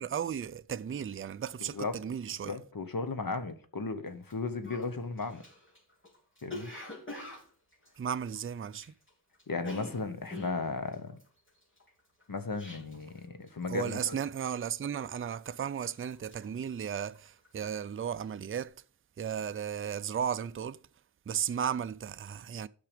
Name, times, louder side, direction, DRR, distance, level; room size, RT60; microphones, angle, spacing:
voice 1, 0.0-2.6 8.0-8.9 13.7-18.7 19.2-20.8 21.3-22.7, right 8 dB, 30° right, 0.4 m, -35 dB
voice 2, 1.6-1.9 2.4-5.4 6.4-6.7 9.5-11.2 12.3-14.2, left 4 dB, 50° left, 1.1 m, -35 dB
Cough, 4.2-4.3 4.6-9.1 9.3-13.2 13.5-13.8 14.1-14.6 15.0-15.6 15.9-17.6 17.9-18.2, left 1 dB, 30° left, 3.4 m, -45 dB
9.1 x 5.9 x 5.0 m
wide cardioid pair, 75°, 42 cm